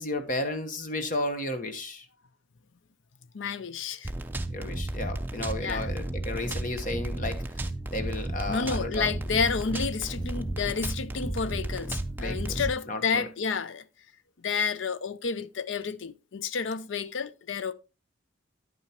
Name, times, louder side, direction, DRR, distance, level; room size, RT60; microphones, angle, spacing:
voice 1, 0.0-2.1 4.5-7.4 7.9-9.1 12.2-13.3, left 2 dB, 40° left, 1.1 m, -33 dB
voice 2, 3.3-4.1 5.6-5.9 8.5-13.9 14.4-17.7, left 5 dB, 75° left, 0.5 m, -30 dB
sound 1, 4.0-12.7, right 1 dB, 10° right, 0.5 m, -33 dB
9.6 x 8.9 x 2.9 m
head